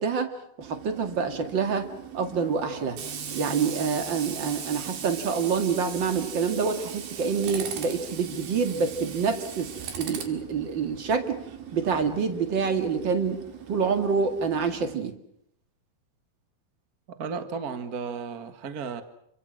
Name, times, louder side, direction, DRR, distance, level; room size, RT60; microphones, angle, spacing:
voice 1, 0.0-1.9 2.1-3.0 3.3-11.4 11.7-13.4 13.7-15.2, right 5 dB, 40° right, 6 dB, 2.1 m, -27 dB
Tools, 0.6-15.0, right 8 dB, 75° right, 3.9 m, -39 dB
voice 2, 17.1-19.0, right 5 dB, 55° right, 9 dB, 1.0 m, -34 dB
28.5 x 24.5 x 6.2 m, 0.71 s
omnidirectional pair, 4.3 m